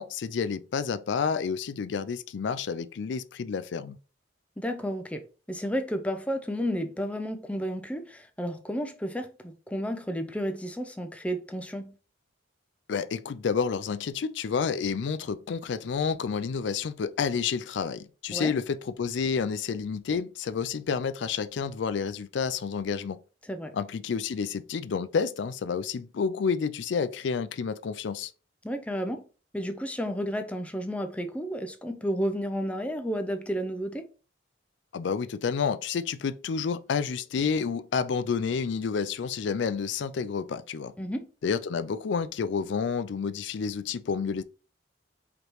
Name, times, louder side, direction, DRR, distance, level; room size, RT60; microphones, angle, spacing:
voice 1, 0.0-4.0 12.9-23.2 23.7-28.3 34.9-40.9 41.4-44.4, left 6 dB, 65° left, 0.4 m, -29 dB
voice 2, 4.6-5.2 5.5-11.9 18.3-18.5 23.5-23.7 28.6-29.2 29.5-34.1 41.0-41.3, equal, 5° left, 0.5 m, -32 dB
5.0 x 3.0 x 3.1 m
head